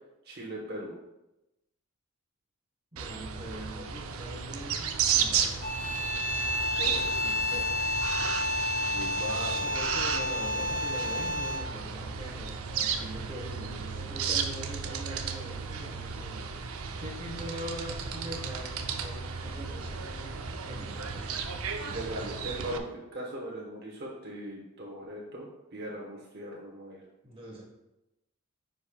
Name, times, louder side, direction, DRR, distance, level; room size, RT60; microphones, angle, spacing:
voice 1, 0.2-1.0 5.4-5.5 6.7-6.9 8.9-9.6 21.8-22.8 23.1-27.0, right 1 dB, 45° right, -3 dB, 1.1 m, -39 dB
voice 2, 2.9-5.7 6.9-7.8 9.6-21.5 27.2-27.6, equal, 25° right, -2 dB, 1.4 m, -43 dB
sound 1, 3.0-22.8, right 6 dB, 75° right, 0.6 m, -34 dB
sound 2, 5.6-11.8, left 1 dB, 40° left, 0.8 m, -30 dB
9.7 x 5.3 x 2.3 m, 0.94 s
head